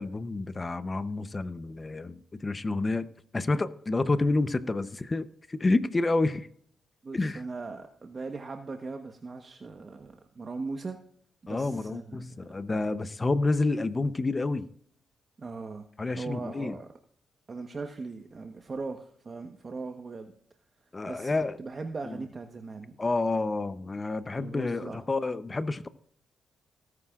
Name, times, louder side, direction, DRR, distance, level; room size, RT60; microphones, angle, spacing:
voice 1, 0.0-3.1 3.3-6.5 7.1-7.4 11.5-14.7 16.0-16.8 20.9-21.6 22.1-22.2 23.0-25.9, left 3 dB, 30° left, 0.8 m, -29 dB
voice 2, 7.0-11.0 11.4-12.6 15.4-15.8 16.2-16.9 17.5-20.3 21.1-21.3 21.6-23.0 24.3-25.0, right 3 dB, 40° right, 1.2 m, -39 dB
18.5 x 9.8 x 2.5 m
cardioid pair, 75°, 0 cm